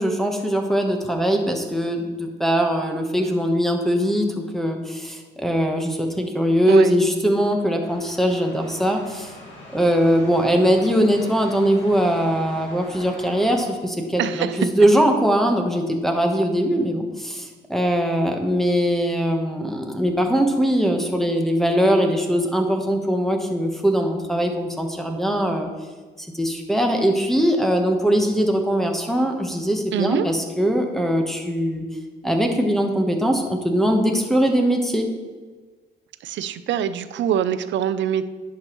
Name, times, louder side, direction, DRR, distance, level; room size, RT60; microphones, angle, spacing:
voice 1, 0.0-9.3 9.7-25.7 26.2-31.8 32.2-35.1, equal, ahead, 1 dB, 1.0 m, -21 dB
sound 1, 7.8-13.6, left 1 dB, 70° left, 2.1 m, -42 dB
voice 2, 14.2-14.7 29.9-30.3 36.2-38.3, right 9 dB, 70° right, 13 dB, 0.5 m, -24 dB
10.5 x 6.1 x 3.0 m, 1.4 s
cardioid pair, 90°, 20 cm